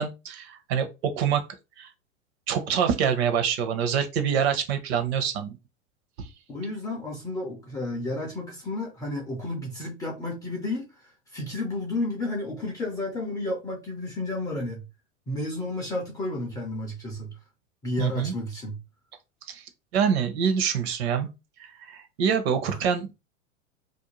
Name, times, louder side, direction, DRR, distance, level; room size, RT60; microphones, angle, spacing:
voice 1, 0.0-1.5 1.8-1.9 2.5-5.6 6.2-6.3 18.0-18.3 19.5-19.6 19.9-21.3 21.6-23.1, right 7 dB, 55° right, 0.7 m, -26 dB
voice 2, 6.5-14.8 15.3-17.3 17.8-18.8 22.7-22.8, left 2 dB, 10° left, 0.3 m, -32 dB
2.5 x 2.1 x 2.9 m
hypercardioid pair, 105°, 38 cm